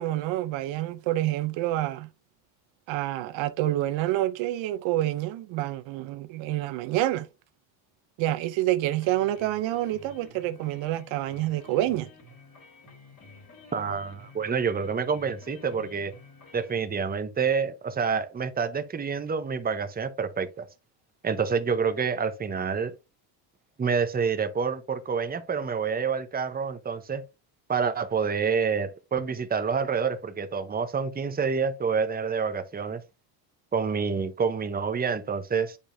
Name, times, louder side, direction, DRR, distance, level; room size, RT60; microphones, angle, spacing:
voice 1, 0.0-2.1 2.9-7.3 8.2-12.1, right 15 dB, 70° right, 0.7 m, -28 dB
sound 1, 8.9-16.7, left 3 dB, 40° left, 3.1 m, -51 dB
voice 2, 13.7-16.1 16.5-20.7 21.2-22.9 23.8-27.2 27.7-33.0 33.7-35.8, right 6 dB, 20° right, 0.9 m, -28 dB
8.5 x 5.2 x 2.7 m
cardioid pair, 100°, 47 cm